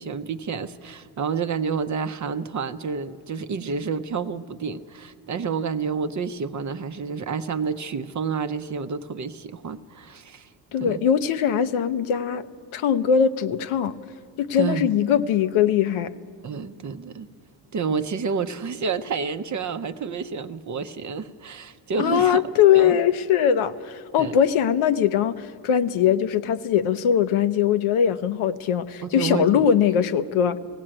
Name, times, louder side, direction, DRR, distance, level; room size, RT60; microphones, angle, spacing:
voice 1, 0.0-10.5 10.8-11.1 14.6-14.9 16.4-17.3 17.7-22.4 22.7-23.0 24.2-24.4 29.0-29.6, right 5 dB, 35° right, 10 dB, 0.6 m, -29 dB
voice 2, 10.7-12.5 12.7-13.9 14.4-16.1 22.0-30.6, left 8 dB, 80° left, 11 dB, 0.8 m, -21 dB
18.5 x 16.5 x 8.8 m, 2.2 s
cardioid pair, 130°, 49 cm